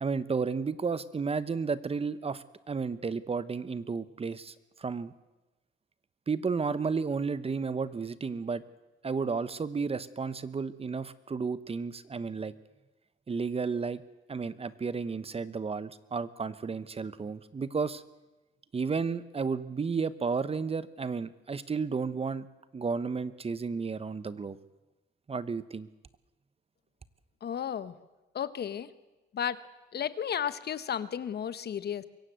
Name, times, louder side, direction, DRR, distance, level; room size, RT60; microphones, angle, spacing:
voice 1, 0.0-5.1 6.3-8.6 9.0-12.5 13.3-14.0 14.3-18.0 18.7-22.5 22.7-24.6 25.3-25.9, right 5 dB, 30° right, 15 dB, 1.0 m, -32 dB
voice 2, 27.4-27.9 28.3-28.9 29.3-29.6 29.9-32.0, left 8 dB, 55° left, 15 dB, 1.1 m, -33 dB
24.0 x 16.0 x 8.2 m, 1.1 s
cardioid pair, 90°, 20 cm